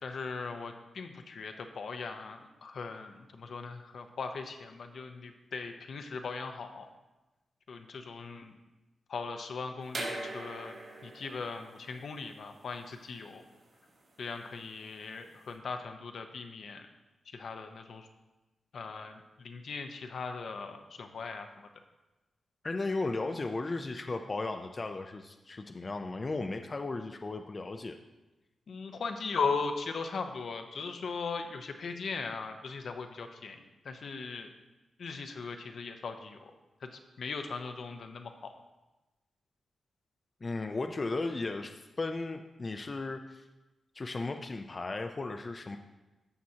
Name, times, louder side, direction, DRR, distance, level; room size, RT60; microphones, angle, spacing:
voice 1, 0.0-6.9 7.7-8.5 9.1-10.7 11.0-13.4 14.2-16.9 17.3-18.1 18.7-21.7 28.7-34.5 35.0-36.5 36.8-38.5, left 4 dB, 70° left, 6 dB, 0.8 m, -39 dB
sound 1, 9.9-15.5, right 2 dB, 60° right, 3.1 m, -43 dB
voice 2, 22.6-28.0 40.4-43.4 43.9-45.8, left 3 dB, 35° left, 5 dB, 0.5 m, -35 dB
14.0 x 5.9 x 2.8 m, 1.1 s
cardioid pair, 85°, 0 cm